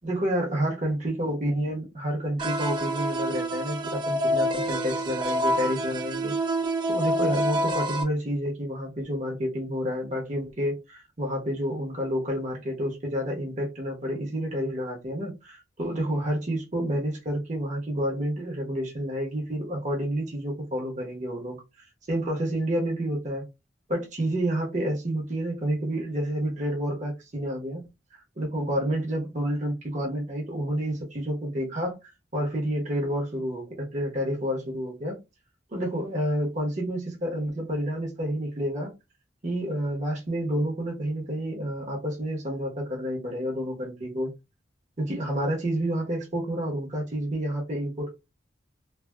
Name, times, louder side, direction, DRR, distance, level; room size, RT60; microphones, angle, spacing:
voice 1, 0.0-6.3 6.9-21.6 22.1-23.5 23.9-27.8 28.4-32.0 32.3-35.1 35.7-38.9 39.4-44.3 45.0-48.1, equal, 40° right, 1.0 m, -29 dB
sound 1, 2.4-8.0, right 1 dB, 25° right, 0.4 m, -27 dB
3.3 x 2.2 x 2.3 m
head